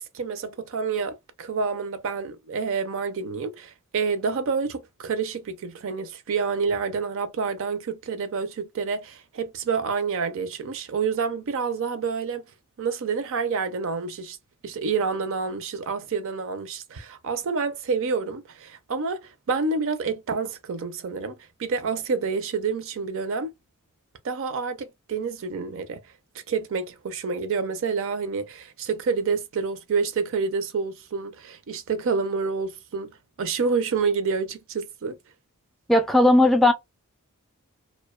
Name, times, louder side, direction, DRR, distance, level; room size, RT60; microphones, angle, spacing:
voice 1, 0.0-12.4 12.8-14.4 14.6-23.5 24.2-26.0 26.5-35.2, right 5 dB, 60° right, 0.5 m, -28 dB
voice 2, 35.9-36.7, left 1 dB, ahead, 0.3 m, -17 dB
2.5 x 2.1 x 2.2 m
head